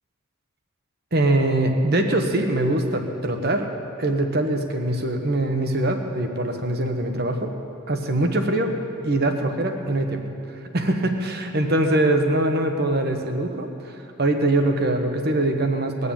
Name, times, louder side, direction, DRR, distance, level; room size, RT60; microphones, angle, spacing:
voice 1, 1.1-3.7 4.0-7.5 7.9-8.7 9.0-10.2 10.7-13.9 14.2-16.1, right 1 dB, 50° right, 5 dB, 1.2 m, -22 dB
20.0 x 6.9 x 8.9 m, 2.7 s
head